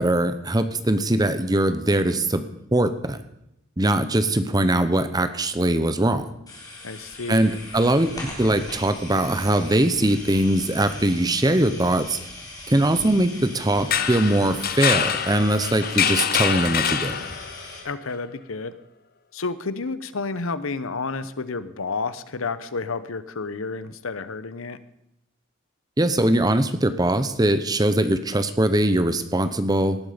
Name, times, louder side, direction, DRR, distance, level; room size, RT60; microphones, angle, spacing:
voice 1, 0.0-2.4 2.7-3.2 3.8-6.3 7.3-8.1 8.4-12.2 12.7-17.1 26.0-30.0, right 1 dB, 20° right, 11 dB, 0.8 m, -21 dB
sound 1, 6.5-17.8, left 2 dB, 15° left, 3.8 m, -40 dB
voice 2, 6.8-7.6 17.8-18.8 19.3-24.8, left 4 dB, 75° left, 14 dB, 0.9 m, -30 dB
sound 2, 13.8-17.6, left 8 dB, 45° left, 0.9 m, -25 dB
18.0 x 11.5 x 5.1 m, 0.83 s
head